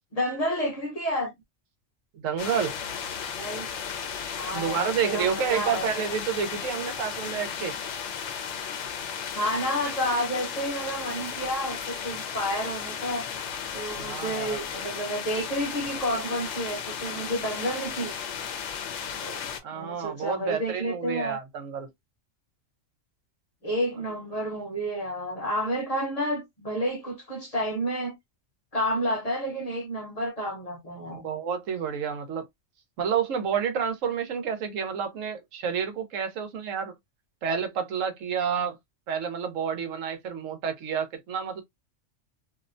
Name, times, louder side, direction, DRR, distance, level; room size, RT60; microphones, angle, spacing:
voice 1, 0.1-1.3 3.3-3.7 4.4-6.0 9.3-13.3 13.7-18.1 19.2-19.4 19.7-21.4 23.6-28.2 28.7-31.2, equal, 35° left, 0.8 m, -30 dB
voice 2, 2.1-2.8 4.5-7.7 13.9-14.6 19.6-21.9 31.1-32.5 33.0-36.9 37.4-38.8 39.1-41.6, right 7 dB, 90° right, 1.1 m, -29 dB
sound 1, 2.4-19.6, left 7 dB, 70° left, 0.9 m, -35 dB
2.8 x 2.1 x 2.5 m
omnidirectional pair, 1.3 m